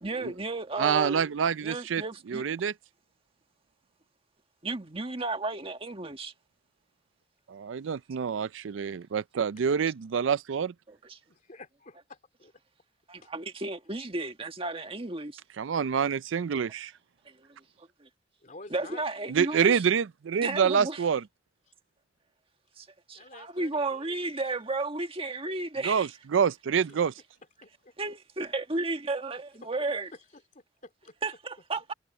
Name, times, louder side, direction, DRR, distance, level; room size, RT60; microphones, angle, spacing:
voice 1, 0.0-1.3 1.6-2.5 4.6-6.3 10.9-11.2 13.1-15.4 17.3-17.4 18.0-18.1 18.7-19.8 20.4-21.0 22.8-26.1 28.0-30.1 31.2-31.9, right 2 dB, 30° right, 1.6 m, -33 dB
voice 2, 0.8-2.0 2.3-2.7 7.5-10.7 15.6-16.9 19.3-21.2 25.8-27.1, right 7 dB, 85° right, 0.4 m, -27 dB
voice 3, 11.3-12.5 13.2-13.3 18.4-19.1 23.1-24.2 26.9-27.0 27.6-27.9 29.6-29.7 30.1-31.1, left 2 dB, 45° left, 2.8 m, -50 dB
head